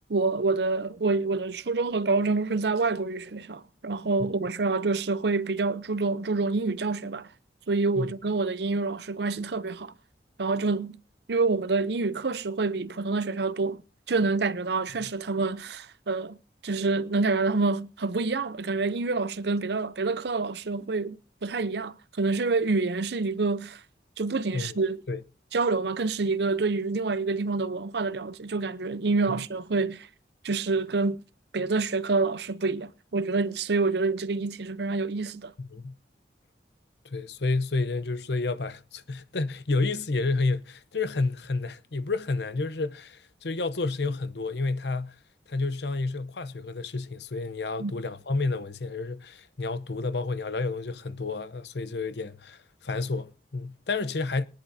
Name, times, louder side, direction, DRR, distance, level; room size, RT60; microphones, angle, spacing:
voice 1, 0.1-7.3 7.7-9.9 10.4-11.0 11.3-13.8 14.1-16.4 16.6-23.8 24.2-25.0 25.5-30.1 30.4-31.2 31.5-35.5 47.8-47.9, right 3 dB, 75° right, 0.7 m, -27 dB
voice 2, 35.6-36.0 37.0-45.2 45.5-54.4, left 3 dB, 75° left, 0.8 m, -30 dB
22.5 x 10.5 x 2.8 m
head